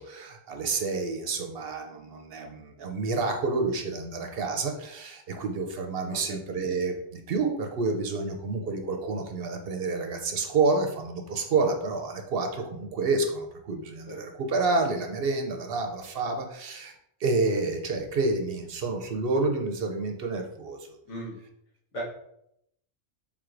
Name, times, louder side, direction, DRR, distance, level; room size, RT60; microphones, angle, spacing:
voice 1, 0.0-16.9 17.2-20.9, right 3 dB, 60° right, 4 dB, 0.7 m, -29 dB
voice 2, 6.0-6.4 14.1-14.2 21.1-21.4 21.9-22.0, right 1 dB, 90° left, -4 dB, 1.5 m, -37 dB
4.5 x 3.6 x 2.5 m, 0.76 s
omnidirectional pair, 1.2 m